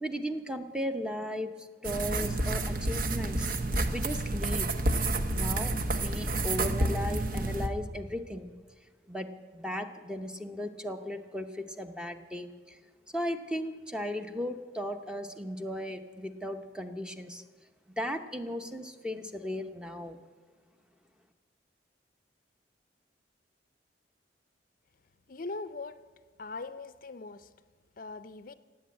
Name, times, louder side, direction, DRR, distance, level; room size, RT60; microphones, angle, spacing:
voice 1, 0.0-3.5 3.9-4.7 5.3-8.5 9.1-9.3 9.5-12.8 13.1-17.4 18.0-20.2, equal, 5° right, 7 dB, 0.7 m, -36 dB
sound 1, 1.8-7.7, right 2 dB, 50° right, 1.0 m, -29 dB
voice 2, 25.3-26.0 26.4-27.5 28.0-28.5, left 3 dB, 50° left, 13 dB, 0.5 m, -40 dB
16.5 x 8.5 x 8.4 m, 1.5 s
head